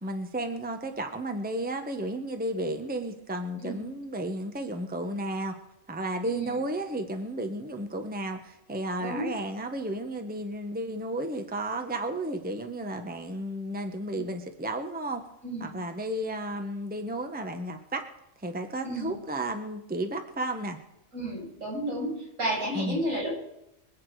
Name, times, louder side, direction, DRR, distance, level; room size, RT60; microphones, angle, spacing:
voice 1, 0.0-5.5 5.9-15.2 15.6-18.0 18.4-20.8 22.7-23.0, right 1 dB, 5° right, 5 dB, 1.3 m, -33 dB
voice 2, 6.2-6.6 9.0-9.3 14.1-14.2 15.4-15.7 18.8-19.1 21.1-23.3, right 1 dB, 70° right, -5 dB, 8.3 m, -32 dB
25.5 x 8.6 x 4.9 m, 0.86 s
omnidirectional pair, 1.4 m